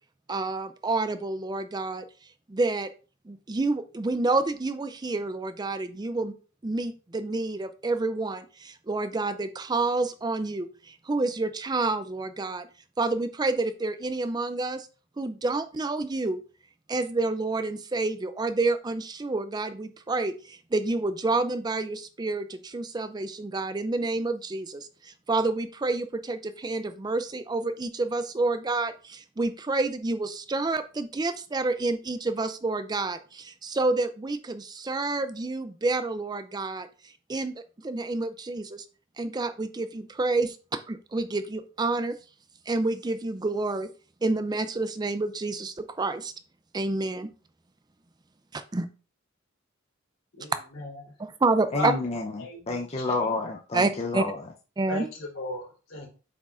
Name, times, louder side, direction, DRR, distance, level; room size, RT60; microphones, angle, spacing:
voice 1, 0.3-2.0 2.5-2.9 3.3-6.3 6.6-8.4 8.9-10.7 11.1-12.6 13.0-14.8 15.2-16.4 16.9-20.3 20.7-24.8 25.3-28.9 29.4-33.2 33.4-36.9 37.3-37.5 37.8-38.8 39.2-40.5 40.9-42.1 42.7-43.9 44.2-46.3 46.7-47.3 48.7-48.9 51.4-51.9 53.7-54.2 54.8-55.0, right 3 dB, 20° right, 0.4 m, -28 dB
voice 2, 50.4-50.9 51.7-51.9 52.4-53.1 54.9-56.1, left 2 dB, 75° left, 3.6 m, -35 dB
voice 3, 51.7-54.5, left 3 dB, 30° left, 0.6 m, -30 dB
8.1 x 6.0 x 2.5 m
head